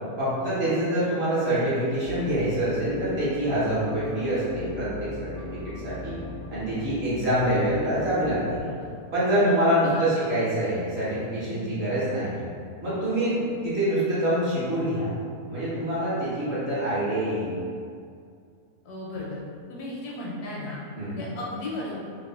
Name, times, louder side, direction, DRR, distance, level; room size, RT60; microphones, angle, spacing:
voice 1, 0.2-6.2 6.5-8.6 9.1-12.5 12.8-13.4 13.6-15.1 15.5-17.5 21.0-21.2, right 1 dB, 45° right, -11 dB, 1.1 m, -25 dB
sound 1, 2.0-8.6, left 1 dB, 65° right, 0.7 m, -41 dB
voice 2, 6.8-7.4 8.6-8.9 9.7-10.1 11.4-12.0 13.3-13.5 18.8-19.4 19.7-20.8 21.2-22.0, left 2 dB, 75° left, -5 dB, 1.2 m, -36 dB
4.1 x 2.2 x 2.3 m, 2.3 s
omnidirectional pair, 1.7 m